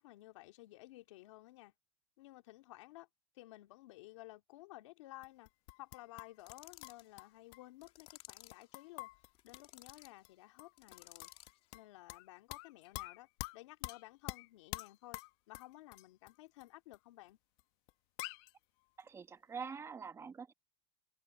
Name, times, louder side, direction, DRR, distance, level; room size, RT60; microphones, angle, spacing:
voice 1, 0.0-1.7 2.2-3.1 3.3-5.5 5.8-9.1 9.4-11.3 11.7-13.3 13.5-15.2 15.5-17.4, left 18 dB, 75° left, 2.2 m, -55 dB
sound 1, 5.2-6.5 6.8-10.0 10.2-10.3 10.6-12.3 12.5-16.3 16.6-16.7 16.9-17.0 17.6-17.7 17.9-18.0 18.2-18.5, left 22 dB, 60° left, 1.2 m, -47 dB
sound 2, 6.4-7.1 7.8-8.7 9.3-10.1 10.8-11.6, left 13 dB, 40° left, 2.5 m, -56 dB
voice 2, 19.0-20.5, right 5 dB, 20° right, 1.3 m, -45 dB
supercardioid pair, 135°, 16 cm